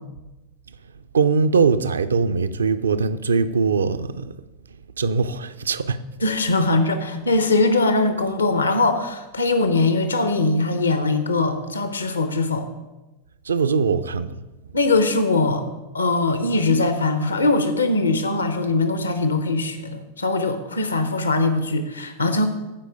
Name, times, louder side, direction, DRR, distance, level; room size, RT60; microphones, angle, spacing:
voice 1, 1.1-4.3 5.0-6.0 13.5-14.4, right 5 dB, 70° right, 0.5 m, -21 dB
voice 2, 6.2-12.7 14.7-15.6 15.9-22.5, left 2 dB, 75° left, 0.9 m, -21 dB
14.0 x 4.9 x 5.1 m
figure-of-eight pair, 90°, 0 cm